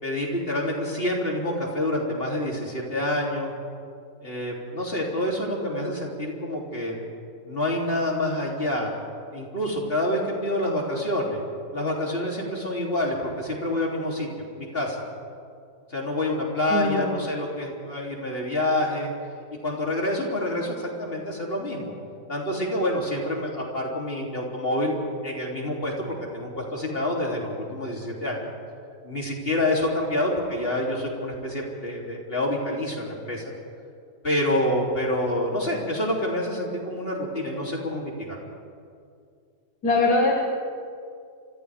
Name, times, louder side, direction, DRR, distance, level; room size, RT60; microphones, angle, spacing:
voice 1, 0.0-3.5 4.2-6.9 7.5-8.9 9.3-11.4 11.7-14.3 14.6-15.0 15.9-19.1 19.6-21.9 22.3-24.9 25.2-28.5 29.0-33.5 34.2-38.4, left 1 dB, 30° left, -2 dB, 3.5 m, -27 dB
voice 2, 16.7-17.2 39.8-40.4, left 2 dB, 60° left, -2 dB, 2.5 m, -22 dB
29.5 x 26.5 x 3.6 m, 2.3 s
omnidirectional pair, 1.9 m